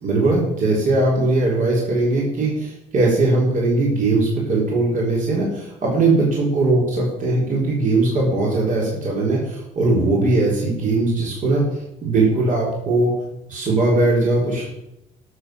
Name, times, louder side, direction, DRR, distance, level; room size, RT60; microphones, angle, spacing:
voice 1, 0.0-13.1 13.5-14.7, right 2 dB, 50° right, -3 dB, 3.9 m, -20 dB
13.0 x 6.7 x 6.8 m, 0.85 s
cardioid pair, 110°, 17 cm